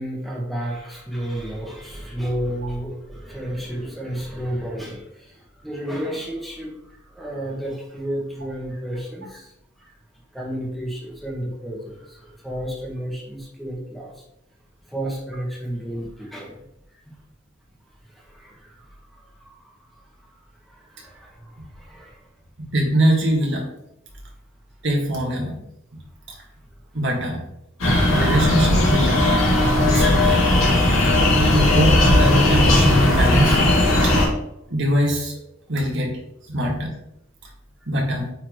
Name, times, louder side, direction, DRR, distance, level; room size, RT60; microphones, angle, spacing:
voice 1, 0.0-9.5 9.8-9.9 10.3-14.2 14.9-16.6 16.9-17.2 18.1-19.7 20.6-22.2 27.8-28.2 33.8-33.9, equal, ahead, -2 dB, 1.5 m, -32 dB
voice 2, 22.6-23.7 24.8-25.6 25.9-26.0 26.4-26.5 26.9-27.4 28.1-29.2 29.8-30.4 31.3-33.6 34.0-34.1 34.7-35.3 35.7-36.2 36.5-36.9 37.9-38.3, equal, 60° right, -1 dB, 1.9 m, -22 dB
sound 1, 27.8-34.2, left 1 dB, 80° left, 2.4 m, -17 dB
9.2 x 4.1 x 3.1 m, 0.81 s
head